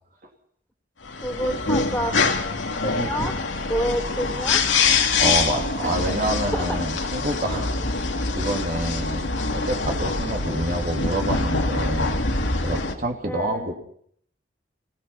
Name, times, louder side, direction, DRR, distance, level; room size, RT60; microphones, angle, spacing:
sound 1, 1.0-12.9, left 4 dB, 90° left, 2.5 m, -24 dB
voice 1, 1.2-2.2 2.7-3.3 3.7-4.6 5.8-5.9 6.5-6.8 13.3-13.7, equal, 10° left, 5 dB, 3.3 m, -28 dB
voice 2, 3.0-3.3 5.2-12.2 12.6-13.7, right 1 dB, 45° right, 2 dB, 2.9 m, -28 dB
26.5 x 18.0 x 5.7 m, 0.65 s
head